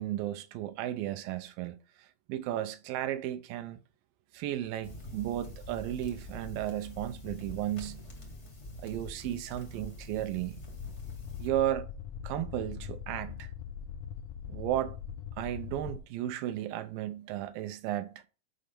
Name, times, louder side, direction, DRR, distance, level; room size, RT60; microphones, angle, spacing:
voice 1, 0.0-3.8 4.3-8.0 8.8-10.6 11.4-11.9 12.2-13.5 14.5-15.0 15.4-18.1, right 12 dB, 80° right, 2.3 m, -34 dB
sound 1, 4.8-11.5, left 1 dB, 45° left, 0.9 m, -45 dB
sound 2, 10.7-16.0, left 8 dB, 90° left, 1.7 m, -42 dB
6.8 x 5.1 x 5.2 m
omnidirectional pair, 4.2 m